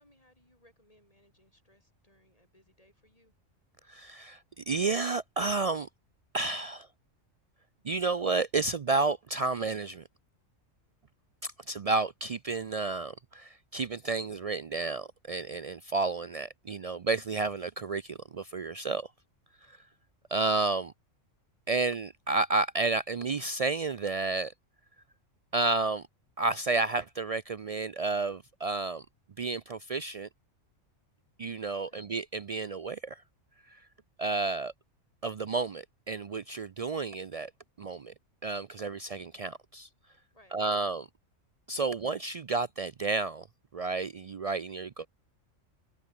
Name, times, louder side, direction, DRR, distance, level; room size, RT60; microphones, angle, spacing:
voice 1, 0.0-3.3 31.7-32.0 40.3-40.9, left 1 dB, 25° left, 7.8 m, -64 dB
voice 2, 3.9-5.9 6.3-6.9 7.8-10.0 11.4-19.1 19.6-19.8 20.3-20.9 21.7-24.5 25.5-26.0 26.4-29.1 29.4-30.3 31.4-33.2 33.7-33.8 34.2-34.7 35.2-37.5 37.8-38.1 38.4-39.9 40.5-41.1 41.7-43.5 43.7-45.1, right 3 dB, 75° right, 0.3 m, -31 dB
omnidirectional pair, 1.3 m